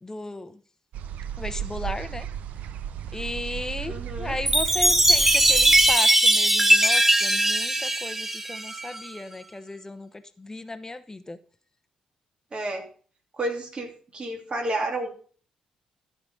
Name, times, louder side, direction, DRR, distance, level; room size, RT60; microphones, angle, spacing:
voice 1, 0.0-0.6 1.4-2.3 3.1-11.4, left 2 dB, 20° left, 11 dB, 0.9 m, -35 dB
sound 1, 0.9-6.0, right 9 dB, 70° right, 0.6 m, -34 dB
voice 2, 3.9-4.4 12.5-12.8 13.3-15.2, right 2 dB, 40° right, 4 dB, 2.7 m, -31 dB
Chime, 4.5-9.1, right 1 dB, 10° right, 1.0 m, -20 dB
13.5 x 4.9 x 5.3 m, 0.41 s
hypercardioid pair, 45°, 3 cm